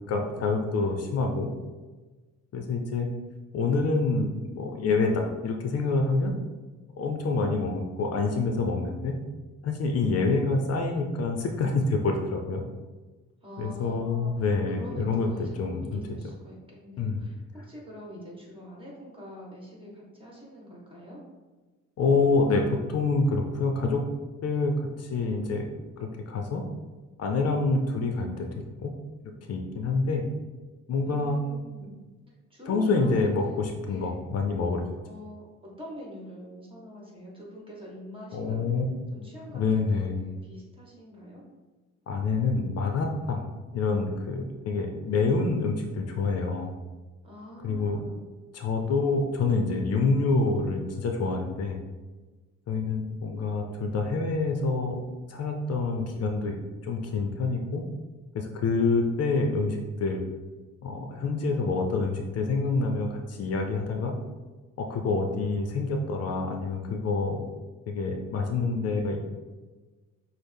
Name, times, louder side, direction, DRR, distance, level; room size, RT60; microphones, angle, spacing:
voice 1, 0.1-1.5 2.5-3.1 3.5-6.3 7.0-9.1 9.6-12.6 13.6-16.0 17.0-17.2 22.0-22.6 22.9-24.0 24.4-25.7 26.0-26.6 27.2-28.5 28.8-28.9 29.2-30.2 30.9-31.4 32.7-34.8 38.3-39.2 39.5-40.1 42.1-43.5 43.7-46.7 47.6-48.0 48.5-51.8 52.7-55.0 55.3-56.5 56.8-57.8 58.3-60.2 60.8-64.1 64.8-67.4 67.9-69.2, left 3 dB, 55° left, 3 dB, 0.5 m, -27 dB
voice 2, 13.4-21.2 31.0-32.0 32.5-34.3 35.0-38.6 39.1-41.4 47.2-48.2, equal, 15° right, -3 dB, 1.5 m, -44 dB
6.1 x 2.1 x 3.4 m, 1.3 s
cardioid pair, 90°, 30 cm